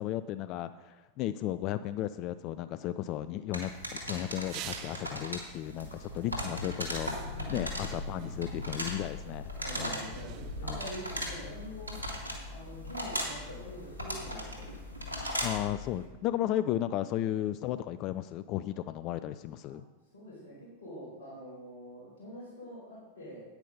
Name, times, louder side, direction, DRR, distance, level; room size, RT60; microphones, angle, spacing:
voice 1, 0.0-9.5 9.8-10.1 10.6-10.8 15.4-19.9, left 12 dB, 40° left, 13 dB, 0.4 m, -34 dB
sound 1, 3.5-15.7, equal, 90° left, 2.0 m, -39 dB
sound 2, 4.4-5.3 6.2-6.4 6.9-7.7 8.2-8.8 9.7-10.8 11.9-12.0, right 13 dB, 40° right, 0.5 m, -47 dB
sound 3, 6.8-16.1, left 3 dB, 90° right, 2.4 m, -44 dB
voice 2, 7.2-7.6 9.6-12.0 12.5-14.7 19.7-19.8 20.1-23.4, equal, 60° left, -5 dB, 4.4 m, -45 dB
9.4 x 9.0 x 5.3 m, 1.1 s
figure-of-eight pair, 90°, 0 cm